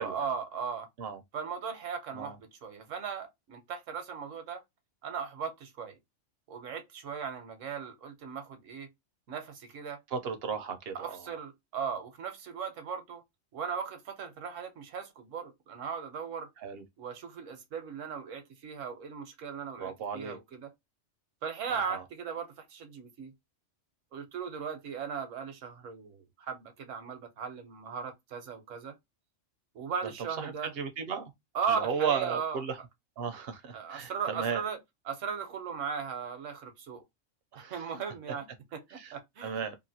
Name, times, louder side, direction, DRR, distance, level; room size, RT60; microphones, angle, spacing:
voice 1, 0.0-0.9 1.3-4.6 5.0-6.0 6.5-8.9 9.3-10.0 10.9-13.2 13.5-16.5 17.0-20.7 21.4-23.3 24.1-28.9 29.7-30.7 31.5-32.6 33.7-34.8 35.1-37.0 37.6-39.6, right 6 dB, 80° right, 1.1 m, -37 dB
voice 2, 10.1-11.2 16.6-16.8 19.8-20.4 21.7-22.0 30.4-31.3 31.7-32.8 33.2-34.6 37.5-37.8 38.9-39.1 39.4-39.8, right 6 dB, 65° right, 0.7 m, -35 dB
2.8 x 2.5 x 2.6 m
omnidirectional pair, 1.3 m